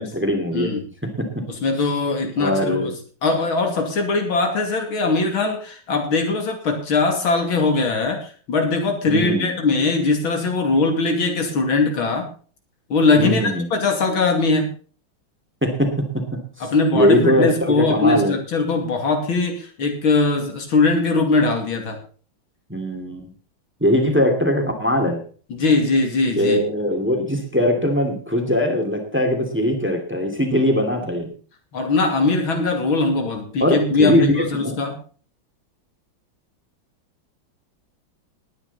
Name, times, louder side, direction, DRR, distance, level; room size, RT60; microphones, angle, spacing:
voice 1, 0.0-0.7 1.0-1.5 2.4-2.9 9.1-9.5 13.2-13.7 15.6-18.3 22.7-23.2 23.8-25.2 26.4-31.3 33.6-34.7, equal, 5° right, 4 dB, 2.5 m, -21 dB
voice 2, 0.5-0.8 1.6-2.9 3.2-12.3 12.9-14.7 16.6-22.0 25.5-26.6 31.7-34.9, left 3 dB, 80° left, 4 dB, 3.4 m, -20 dB
19.5 x 9.7 x 4.2 m, 0.41 s
omnidirectional pair, 2.2 m